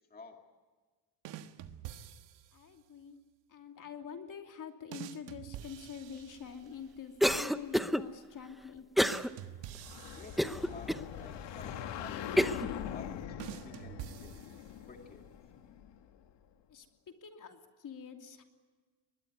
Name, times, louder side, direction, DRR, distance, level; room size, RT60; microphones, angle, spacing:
sound 1, 1.2-2.7 4.9-6.9 9.0-11.2 13.4-15.0, right 11 dB, 90° right, 1.5 m, -47 dB
voice 1, 2.5-3.2 3.5-8.9 16.7-16.9 17.2-18.4, left 6 dB, 45° left, 4 dB, 2.9 m, -46 dB
Cough, 7.2-8.0 9.0-9.3 9.7-9.8 10.4-11.0 11.6-11.7 12.4-12.7, equal, ahead, 0.7 m, -28 dB
sound 2, 9.6-16.2, left 9 dB, 80° left, 2.1 m, -42 dB
voice 2, 10.2-14.6 14.9-15.2, left 4 dB, 20° left, 3 dB, 2.2 m, -52 dB
24.0 x 21.0 x 9.6 m, 1.4 s
cardioid pair, 135°, 42 cm